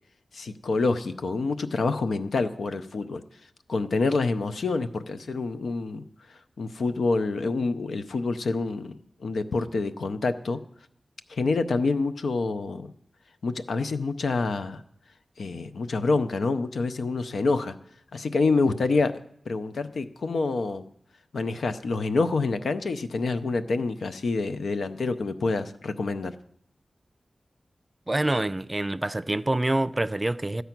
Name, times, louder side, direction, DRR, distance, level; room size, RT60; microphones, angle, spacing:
voice 1, 0.3-3.2 3.7-10.6 11.3-12.9 13.4-14.8 15.4-17.8 18.1-19.1 19.5-20.8 21.3-26.3, left 3 dB, 90° left, 0.6 m, -27 dB
voice 2, 28.1-30.6, right 1 dB, 30° right, 0.5 m, -26 dB
14.0 x 8.0 x 5.9 m
cardioid pair, 45°, 0 cm